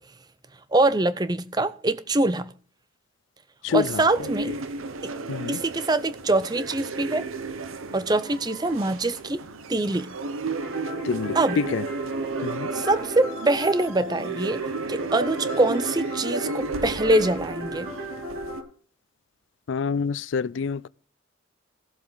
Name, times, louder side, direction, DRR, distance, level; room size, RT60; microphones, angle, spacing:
voice 1, 0.7-2.5 3.7-4.5 5.0-5.1 5.5-7.3 7.9-9.4 9.7-10.1 11.4-11.6 12.7-14.6 14.9-17.9, right 2 dB, 20° right, 0.5 m, -24 dB
voice 2, 3.6-4.3 5.3-5.6 11.0-11.8 12.4-12.7 19.7-20.9, left 5 dB, 70° left, 0.4 m, -27 dB
sound 1, 3.7-18.6, right 3 dB, 90° right, 0.8 m, -33 dB
sound 2, 10.6-18.6, equal, 60° right, 5.6 m, -37 dB
15.5 x 7.7 x 3.9 m
head